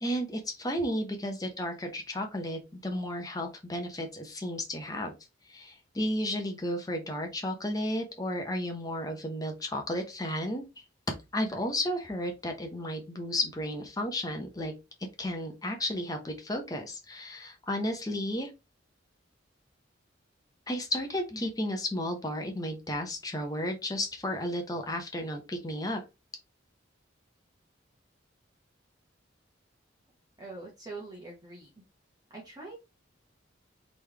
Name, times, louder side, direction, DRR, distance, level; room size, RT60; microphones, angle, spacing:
voice 1, 0.0-5.1 5.5-10.6 11.3-14.7 15.2-18.5 20.7-26.0, left 1 dB, 20° left, 4 dB, 0.9 m, -33 dB
voice 2, 30.4-31.7 32.3-32.8, right 3 dB, 20° right, -3 dB, 1.2 m, -43 dB
3.9 x 3.3 x 3.4 m, 0.25 s
head